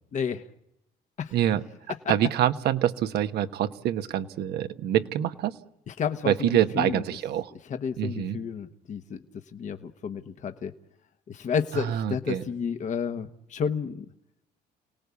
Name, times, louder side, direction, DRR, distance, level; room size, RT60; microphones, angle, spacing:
voice 1, 0.1-0.4 1.2-1.3 5.9-6.5 6.7-7.0 7.6-9.2 9.5-10.7 11.3-14.0, left 6 dB, 45° left, 7 dB, 1.3 m, -31 dB
voice 2, 1.3-1.6 2.1-5.5 6.3-7.5 8.0-8.4 11.7-12.4, right 11 dB, 75° right, 9 dB, 1.4 m, -26 dB
29.5 x 18.5 x 8.4 m, 0.82 s
cardioid pair, 110°, 17 cm